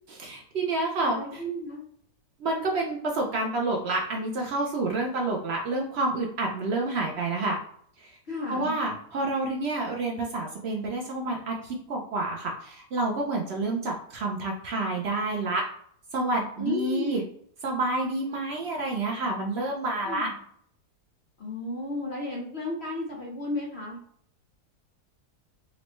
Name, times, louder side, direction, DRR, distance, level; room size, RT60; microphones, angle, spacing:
voice 1, 0.1-1.4 2.4-7.6 8.0-8.2 8.5-15.6 16.1-17.2 17.6-20.3, right 2 dB, 80° right, 0 dB, 0.5 m, -29 dB
voice 2, 1.0-1.8 8.3-8.8 16.6-17.2 20.0-20.3 21.4-24.0, left 1 dB, 50° left, -2 dB, 0.9 m, -33 dB
4.0 x 2.1 x 3.0 m, 0.64 s
omnidirectional pair, 1.7 m